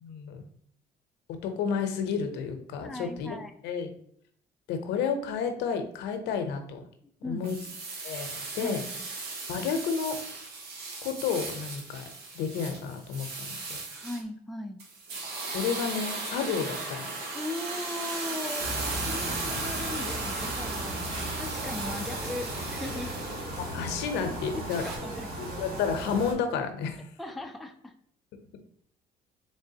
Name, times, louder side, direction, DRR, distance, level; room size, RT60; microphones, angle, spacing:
voice 1, 0.0-0.4 1.4-3.3 3.6-3.9 4.7-6.8 7.2-7.6 8.0-8.8 9.5-10.2 11.0-12.0 12.3-13.8 15.5-17.1 21.1-21.3 23.6-24.8 25.4-27.1, left 6 dB, 90° left, 6 dB, 0.7 m, -31 dB
voice 2, 2.8-3.5 7.2-7.4 8.6-9.1 13.9-14.8 17.3-23.2 24.8-25.3 27.2-27.9, left 1 dB, ahead, 4 dB, 0.4 m, -38 dB
sound 1, 7.4-14.2 14.8-23.8 24.7-25.0, right 3 dB, 70° right, 1.1 m, -37 dB
sound 2, 18.6-26.3, right 1 dB, 55° right, 1.5 m, -36 dB
3.8 x 3.3 x 2.7 m, 0.66 s
cardioid pair, 110°, 17 cm